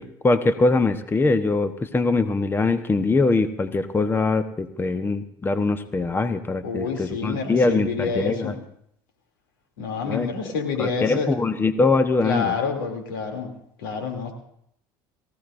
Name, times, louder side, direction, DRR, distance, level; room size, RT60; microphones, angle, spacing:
voice 1, 0.0-8.5 10.1-10.3 10.8-12.6, left 3 dB, 20° left, 10 dB, 1.0 m, -22 dB
voice 2, 6.6-8.6 9.8-11.4 12.2-13.5 13.8-14.3, left 5 dB, 85° left, 3 dB, 2.8 m, -28 dB
23.5 x 15.5 x 2.6 m, 0.72 s
hypercardioid pair, 75°, 11 cm